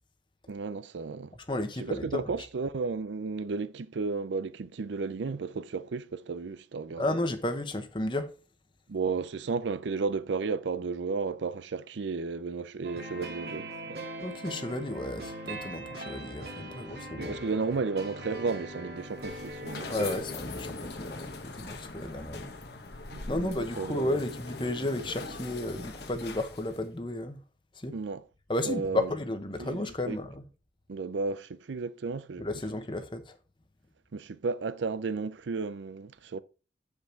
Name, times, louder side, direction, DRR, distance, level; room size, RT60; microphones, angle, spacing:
voice 1, 0.5-1.4 1.8-7.2 8.9-14.1 16.9-19.9 23.1-24.1 27.9-28.2 28.6-29.1 29.6-29.8 30.1-30.2 30.9-32.5 34.1-36.4, right 4 dB, 80° right, 0.5 m, -33 dB
voice 2, 1.5-2.2 7.0-8.3 14.2-17.4 19.9-22.5 23.3-27.4 27.8-27.9 28.5-30.4 32.4-33.4, left 1 dB, 25° left, 1.0 m, -33 dB
sound 1, 12.8-20.2, right 1 dB, 60° right, 1.9 m, -40 dB
sound 2, 19.0-26.9, left 3 dB, 65° left, 1.1 m, -41 dB
8.6 x 5.3 x 4.5 m
head